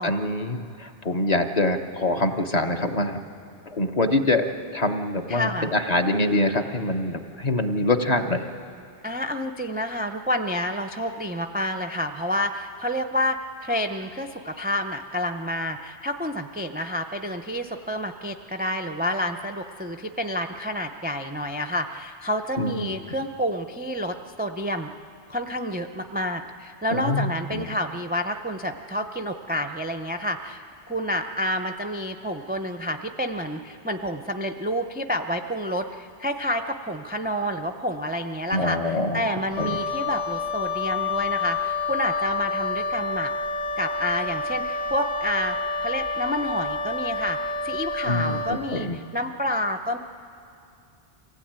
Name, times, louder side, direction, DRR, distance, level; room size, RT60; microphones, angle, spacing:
voice 1, 0.0-3.2 3.7-4.4 4.7-8.4 22.6-22.9 26.9-27.7 38.5-39.2 39.6-39.7 48.1-49.0, left 2 dB, 40° left, 5 dB, 1.0 m, -25 dB
voice 2, 5.3-5.7 9.0-24.9 25.3-30.6 30.9-43.3 43.8-45.6 45.8-50.0, equal, 15° right, 4 dB, 0.4 m, -29 dB
Wind instrument woodwind instrument, 39.5-48.6, left 3 dB, 70° left, 2.7 m, -28 dB
24.0 x 16.0 x 8.8 m, 2.5 s
omnidirectional pair, 1.2 m